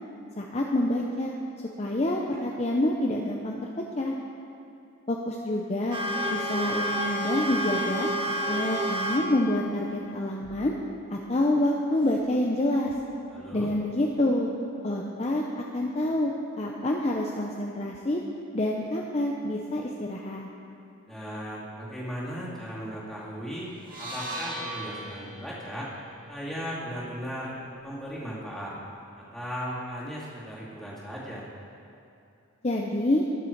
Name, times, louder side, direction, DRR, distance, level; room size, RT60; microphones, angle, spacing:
voice 1, 0.4-1.3 1.8-3.6 4.0-4.1 5.1-6.0 6.3-8.1 8.5-10.7 11.1-12.9 13.5-14.5 14.8-15.4 15.7-16.3 16.6-18.2 18.5-20.5 32.6-33.3, left 1 dB, 30° left, 0 dB, 0.6 m, -27 dB
sound 1, 5.9-9.2 9.5-9.6 10.4-10.6 12.9-13.0 13.6-13.7, equal, 25° right, 1.2 m, -29 dB
voice 2, 13.3-13.7 21.1-23.7 24.0-25.9 26.3-28.8 29.2-31.5, equal, ahead, -8 dB, 2.4 m, -37 dB
sound 2, 23.8-28.0, right 1 dB, 40° right, 2.1 m, -40 dB
20.0 x 6.7 x 4.6 m, 2.7 s
head